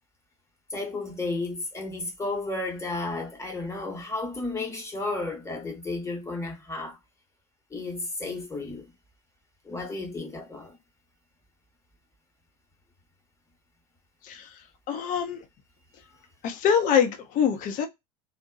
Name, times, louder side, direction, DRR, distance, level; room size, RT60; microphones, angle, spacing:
voice 1, 0.7-7.0 7.7-8.9 9.6-10.8, left 2 dB, 15° left, 1.1 m, -33 dB
voice 2, 14.9-15.4 16.4-17.9, left 8 dB, 45° left, 0.6 m, -24 dB
2.6 x 2.1 x 2.3 m
hypercardioid pair, 85°, 19 cm